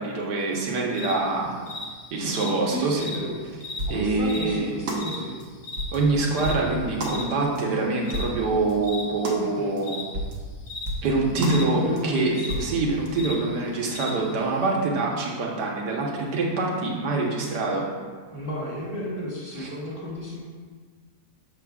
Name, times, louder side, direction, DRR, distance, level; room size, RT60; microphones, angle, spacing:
voice 1, 0.0-1.5 2.1-3.1 3.9-4.7 5.9-10.0 11.0-12.3 12.6-17.9 19.6-19.7, right 3 dB, 90° right, -2 dB, 1.7 m, -25 dB
sound 1, 0.9-14.6, left 3 dB, 55° left, 1.4 m, -38 dB
voice 2, 2.7-3.5 3.9-5.4 9.3-9.7 11.7-12.7 18.3-20.4, equal, 30° left, -8 dB, 1.5 m, -32 dB
sound 2, 3.8-4.1 4.3-4.4 4.9-5.0 5.4-5.5 5.8-6.0 6.4-6.7 7.0-7.2 7.5-7.6 8.1-8.3 8.7-8.8 9.2-9.4 9.8-9.9 10.1-10.4 10.9-11.1 11.4-11.6 12.0-12.1 12.5-12.7 13.1-13.2, right 1 dB, 75° right, 1.5 m, -30 dB
7.5 x 6.7 x 2.3 m, 1.5 s
omnidirectional pair, 1.7 m